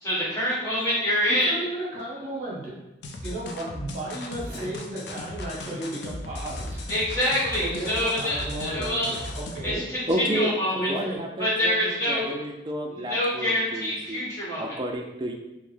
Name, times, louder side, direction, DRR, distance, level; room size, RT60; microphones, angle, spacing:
voice 1, 0.0-1.5 6.9-9.1 9.6-10.9 11.4-12.3 12.9-14.7, left 1 dB, 15° left, -8 dB, 1.2 m, -26 dB
voice 2, 1.4-2.7 3.2-6.8 7.5-9.8 10.7-11.2, right 1 dB, 40° right, -6 dB, 1.4 m, -34 dB
sound 1, 3.0-9.7, left 1 dB, 70° left, 0.4 m, -37 dB
voice 3, 10.1-10.5 10.9-14.3 14.6-15.3, right 1 dB, 25° right, 2 dB, 0.4 m, -31 dB
4.5 x 2.1 x 3.4 m, 1.0 s
head